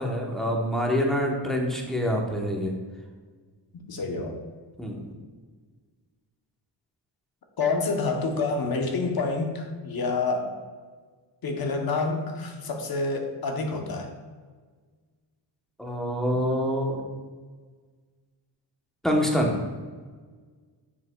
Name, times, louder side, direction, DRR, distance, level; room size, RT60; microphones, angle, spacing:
voice 1, 0.0-2.7 4.8-5.1 15.8-17.0 19.0-19.6, equal, ahead, 0 dB, 0.8 m, -26 dB
voice 2, 3.7-4.4 7.6-10.5 11.4-14.1, left 3 dB, 50° left, 3 dB, 0.9 m, -28 dB
7.1 x 6.6 x 2.2 m, 1.5 s
wide cardioid pair, 155°, 45 cm